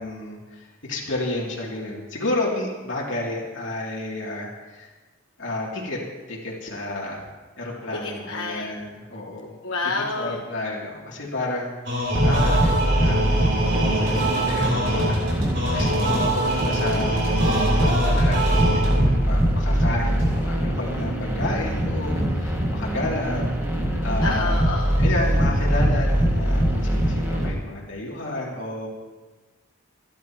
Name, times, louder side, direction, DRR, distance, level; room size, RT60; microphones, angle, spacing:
voice 1, 0.0-4.9 5.4-6.0 6.3-7.2 7.6-9.5 10.1-23.5 24.0-24.6 25.0-28.9, left 2 dB, 65° left, -4 dB, 2.9 m, -31 dB
voice 2, 7.9-8.7 9.6-10.4 23.9-25.0, left 3 dB, 80° left, -2 dB, 1.3 m, -29 dB
sound 1, 11.9-19.2, right 1 dB, 55° right, 3.6 m, -24 dB
sound 2, 12.1-27.5, equal, 10° right, 2.0 m, -22 dB
sound 3, 13.9-20.6 21.0-21.8, right 1 dB, 80° right, 5.3 m, -42 dB
28.5 x 12.0 x 3.0 m, 1.3 s
head